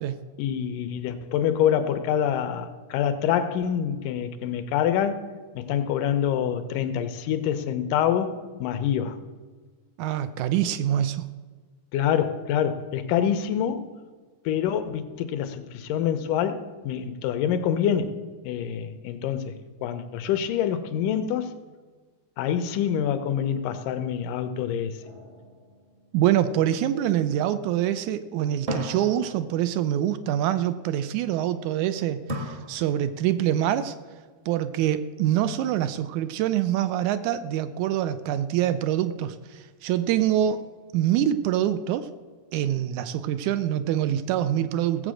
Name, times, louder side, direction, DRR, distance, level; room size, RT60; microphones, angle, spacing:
voice 1, 0.4-5.2 5.6-9.2 11.9-13.9 14.5-21.6 22.4-25.0, left 9 dB, 85° left, 10 dB, 2.4 m, -26 dB
voice 2, 10.0-11.3 26.1-34.0 34.5-40.6 40.9-42.1 42.5-45.1, right 11 dB, 80° right, 12 dB, 1.9 m, -25 dB
sound 1, 25.0-26.6 28.7-30.0 32.3-33.4, equal, 40° right, 1.0 m, -36 dB
16.5 x 7.7 x 6.3 m, 1.4 s
omnidirectional pair, 3.6 m